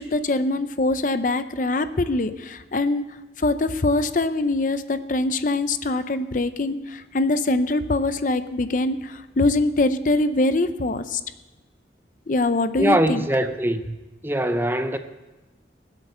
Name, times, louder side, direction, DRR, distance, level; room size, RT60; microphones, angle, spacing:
voice 1, 0.0-3.0 3.4-11.2 12.3-13.2, left 2 dB, 45° left, 0.6 m, -23 dB
voice 2, 12.8-14.0 14.2-15.0, right 1 dB, 10° right, 0.6 m, -22 dB
20.0 x 8.0 x 6.8 m
head